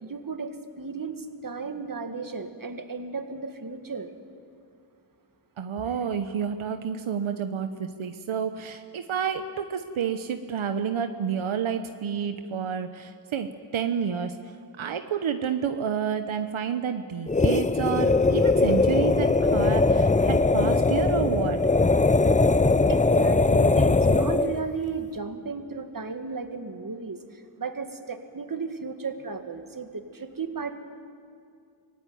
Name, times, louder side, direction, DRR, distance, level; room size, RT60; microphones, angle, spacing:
voice 1, 0.0-4.1 22.9-30.7, right 4 dB, 45° right, 7 dB, 2.0 m, -34 dB
voice 2, 5.6-14.4 14.8-21.6, right 7 dB, 85° right, 8 dB, 1.0 m, -29 dB
sound 1, 17.3-24.6, left 3 dB, 15° left, 0.6 m, -21 dB
25.0 x 17.5 x 9.4 m, 2.4 s
cardioid pair, 60°, 46 cm